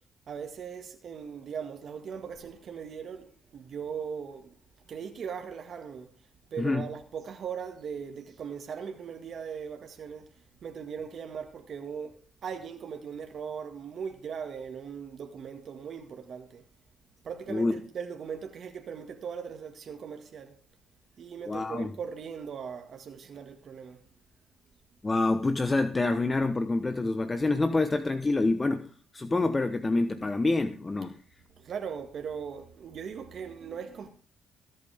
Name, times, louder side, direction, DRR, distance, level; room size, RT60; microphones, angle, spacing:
voice 1, 0.3-4.6 4.9-6.1 6.5-10.3 10.6-12.2 12.4-16.6 17.2-20.5 21.2-24.0 31.6-34.1, right 7 dB, 55° right, 1.7 m, -39 dB
voice 2, 21.5-21.9 25.0-31.2, left 2 dB, 25° left, 1.0 m, -27 dB
22.0 x 8.6 x 3.5 m
cardioid pair, 90°, 0 cm